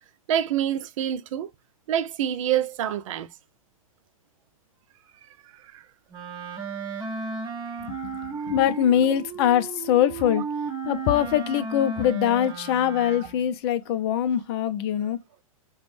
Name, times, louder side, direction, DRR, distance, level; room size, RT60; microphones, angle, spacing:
voice 1, 0.3-1.5 1.9-3.3 5.6-5.8 7.9-8.5 9.0-9.1, right 10 dB, 65° right, 0.4 m, -27 dB
Wind instrument woodwind instrument, 6.1-13.5, right 5 dB, 20° right, 1.1 m, -34 dB
voice 2, 8.4-10.4 10.8-15.2, left 10 dB, 45° left, 0.4 m, -23 dB
2.5 x 2.2 x 3.2 m
hypercardioid pair, 115°, 18 cm